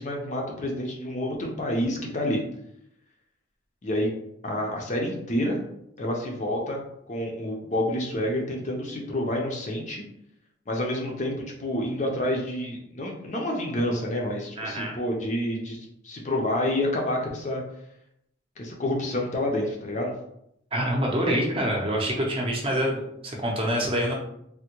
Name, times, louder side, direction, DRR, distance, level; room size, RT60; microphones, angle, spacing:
voice 1, 0.0-2.4 3.8-4.1 4.4-5.6 6.0-6.8 7.1-10.0 10.7-17.6 18.6-20.1, left 1 dB, 40° left, 0 dB, 0.5 m, -28 dB
voice 2, 14.6-15.0 20.7-24.1, equal, 25° right, -2 dB, 0.6 m, -26 dB
3.3 x 2.1 x 2.9 m, 0.77 s
head